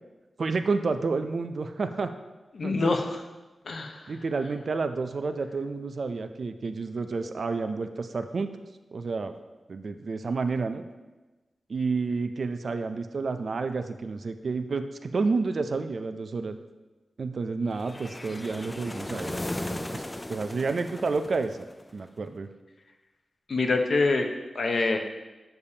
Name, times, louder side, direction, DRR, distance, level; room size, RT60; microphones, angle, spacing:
voice 1, 0.4-2.1 2.6-2.9 4.1-8.5 8.9-9.3 9.7-10.8 11.7-16.6 17.2-19.4 19.7-20.0 20.3-21.6 21.9-22.5, right 4 dB, 65° right, 8 dB, 0.4 m, -30 dB
voice 2, 2.5-3.2 3.6-4.1 23.5-24.3 24.5-25.0, left 3 dB, 65° left, 4 dB, 0.7 m, -25 dB
sound 1, 17.8-22.0, left 1 dB, 20° left, 0.3 m, -36 dB
6.9 x 6.6 x 2.8 m, 1.1 s
cardioid pair, 65°, 0 cm